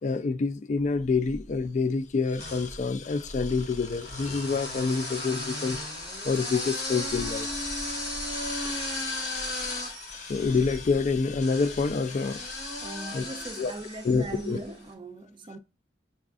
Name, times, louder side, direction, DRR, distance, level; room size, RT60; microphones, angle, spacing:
voice 1, 0.0-5.8 6.2-7.5 8.7-13.2 13.6-13.7 14.0-14.6, left 4 dB, 40° left, 0.3 m, -28 dB
sound 1, 1.0-1.6 2.4-14.7, left 1 dB, 65° left, 1.1 m, -35 dB
voice 2, 12.8-15.6, right 2 dB, 30° right, 0.5 m, -39 dB
7.0 x 2.5 x 2.4 m
head